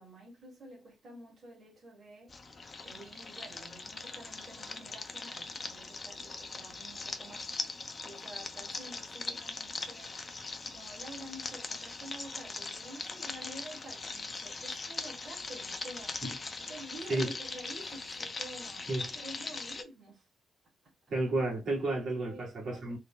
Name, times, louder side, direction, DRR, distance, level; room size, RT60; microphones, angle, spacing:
voice 1, 0.0-2.3 2.8-7.5 8.0-10.1 10.6-16.2 16.6-20.3 20.8-20.9 22.2-23.0, right 1 dB, 30° right, 1.4 m, -49 dB
sound 1, 2.3-19.8, left 3 dB, 25° left, 0.4 m, -41 dB
voice 2, 21.1-23.0, right 2 dB, 50° right, 1.7 m, -32 dB
3.7 x 2.0 x 3.7 m
wide cardioid pair, 170°, 0 cm